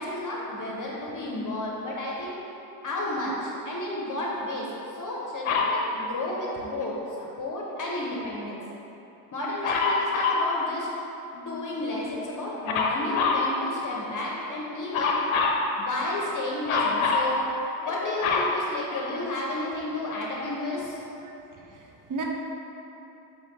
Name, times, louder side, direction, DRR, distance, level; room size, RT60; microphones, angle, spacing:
voice 1, 0.0-2.3 2.8-8.6 9.3-10.9 11.3-15.2 15.8-17.4 17.9-21.0, left 1 dB, 40° left, -4 dB, 0.8 m, -32 dB
Dog, 5.5-5.8 9.6-10.5 12.7-13.5 14.9-15.6 16.7-17.3 17.9-19.4 20.1-20.2, left 4 dB, 70° left, 0.6 m, -25 dB
voice 2, 21.2-22.2, right 3 dB, 40° right, 0 dB, 0.7 m, -38 dB
4.8 x 3.1 x 2.8 m, 3.0 s
supercardioid pair, 50°, 50 cm